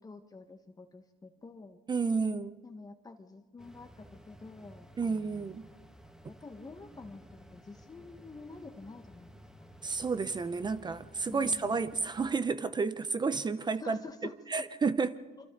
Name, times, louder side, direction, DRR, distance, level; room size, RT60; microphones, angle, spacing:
voice 1, 0.0-1.8 2.6-5.5 6.3-9.3 11.3-11.8 13.8-14.3, left 3 dB, 20° left, 1.5 m, -48 dB
voice 2, 1.9-2.6 5.0-5.7 9.8-14.0 14.5-15.2, right 4 dB, 25° right, 0.8 m, -31 dB
sound 1, 3.6-12.3, equal, 5° right, 1.4 m, -55 dB
28.0 x 25.0 x 4.0 m
cardioid pair, 110°, 17 cm